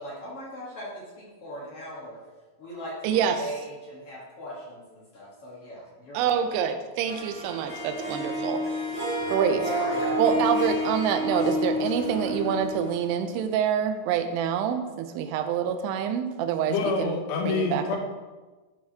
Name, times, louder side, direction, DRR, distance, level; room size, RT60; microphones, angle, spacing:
voice 1, 0.0-2.2 2.6-6.4, equal, 60° left, -6 dB, 1.5 m, -40 dB
voice 2, 3.0-3.4 6.1-8.6 9.3-9.7 10.2-16.7 17.0-17.2 17.5-18.0, right 8 dB, 85° right, 6 dB, 2.7 m, -26 dB
Harp, 7.0-13.3, equal, 30° right, 1.6 m, -29 dB
sound 1, 9.2-13.1, equal, 45° left, 1.5 m, -39 dB
voice 3, 16.7-18.0, left 4 dB, 85° left, 1 dB, 1.5 m, -27 dB
12.0 x 4.7 x 2.8 m, 1.3 s
omnidirectional pair, 4.8 m